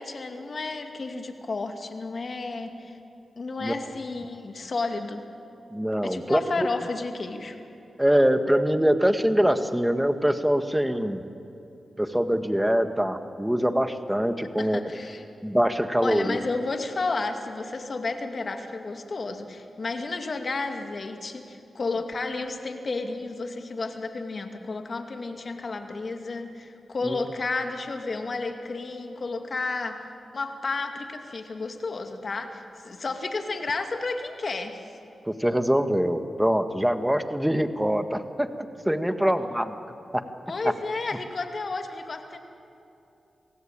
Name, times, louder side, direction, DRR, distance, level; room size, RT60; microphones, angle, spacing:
voice 1, 0.0-3.0 3.4-5.2 6.0-7.6 14.6-15.2 16.0-30.0 30.3-34.8 40.5-42.4, left 3 dB, 55° left, 5 dB, 2.4 m, -32 dB
voice 2, 5.7-6.7 8.0-11.2 12.0-14.8 15.4-16.4 27.0-27.2 35.3-38.5 38.9-39.8 40.1-40.2, equal, 5° right, 8 dB, 1.8 m, -24 dB
27.0 x 17.0 x 9.0 m, 2.8 s
cardioid pair, 45°, 0 cm